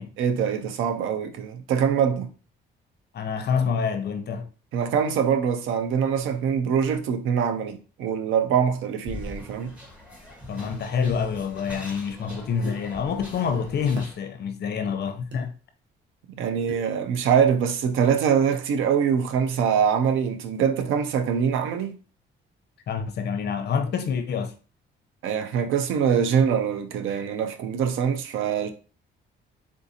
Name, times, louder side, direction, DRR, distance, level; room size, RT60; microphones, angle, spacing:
voice 1, 0.2-2.3 4.7-9.7 16.3-22.0 25.2-28.7, right 7 dB, 85° right, 0.6 m, -24 dB
voice 2, 3.1-4.4 10.5-15.5 22.9-24.5, left 6 dB, 55° left, 0.7 m, -27 dB
sound 1, 9.0-14.2, left 1 dB, 5° right, 1.3 m, -42 dB
sound 2, 12.6-12.8 14.0-14.2 15.3-15.4 16.7-16.9, right 4 dB, 65° right, 1.0 m, -39 dB
3.8 x 2.6 x 2.7 m
cardioid pair, 90°, 20 cm